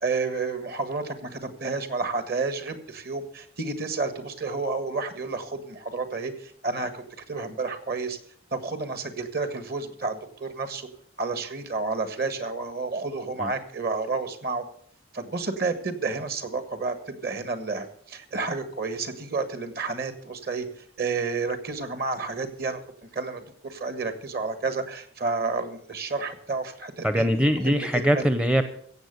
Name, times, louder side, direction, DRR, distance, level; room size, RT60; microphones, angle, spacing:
voice 1, 0.0-8.2 8.5-10.9 11.2-14.6 15.1-20.7 21.0-27.2 27.6-27.9 28.1-28.3, right 4 dB, 50° right, 9 dB, 1.5 m, -30 dB
voice 2, 27.0-28.6, equal, 5° right, 9 dB, 0.6 m, -22 dB
16.0 x 7.7 x 6.7 m, 0.62 s
head